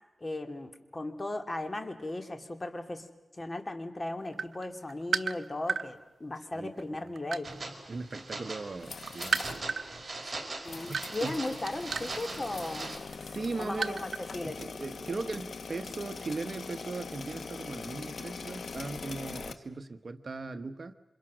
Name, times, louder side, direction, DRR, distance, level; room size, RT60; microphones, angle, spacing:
voice 1, 0.2-3.1 3.3-7.5 10.6-12.9 13.6-14.6, left 2 dB, 30° left, 6 dB, 2.6 m, -37 dB
sound 1, 4.3-5.9 6.6-8.2 8.5-14.3 14.6-14.8, right 5 dB, 75° right, 0.9 m, -34 dB
sound 2, 7.4-13.0, right 2 dB, 35° right, 5.0 m, -41 dB
voice 2, 7.9-10.0 10.9-11.3 13.2-14.0 14.4-20.9, right 3 dB, 50° right, 10 dB, 1.2 m, -39 dB
sound 3, 8.7-9.6 10.0-10.1 10.7-19.5, left 5 dB, 80° left, 1.3 m, -42 dB
28.0 x 26.0 x 6.3 m, 1.1 s
wide cardioid pair, 80°, 0 cm